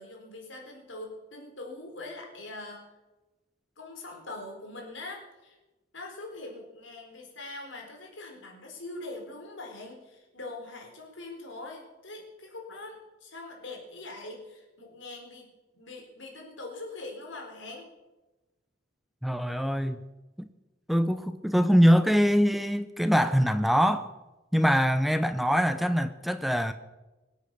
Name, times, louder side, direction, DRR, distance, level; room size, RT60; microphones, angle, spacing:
voice 1, 0.0-2.8 3.8-5.6 5.9-17.9, left 2 dB, 85° left, 4.4 m, -42 dB
voice 2, 19.2-20.0 20.4-20.5 20.9-24.1 24.5-26.7, equal, ahead, 0.6 m, -23 dB
24.0 x 8.3 x 6.9 m
head